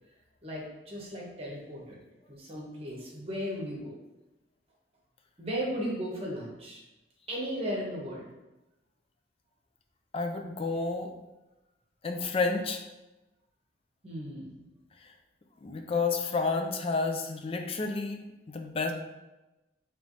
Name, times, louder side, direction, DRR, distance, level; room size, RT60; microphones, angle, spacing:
voice 1, 0.4-2.0 2.3-3.9 5.4-6.8 7.3-8.3 14.0-14.7, equal, 35° right, -2 dB, 1.0 m, -36 dB
voice 2, 10.1-11.1 12.0-12.8 15.0-15.1 15.6-18.9, left 3 dB, 30° left, 4 dB, 0.4 m, -30 dB
3.3 x 3.0 x 3.9 m, 1.0 s
head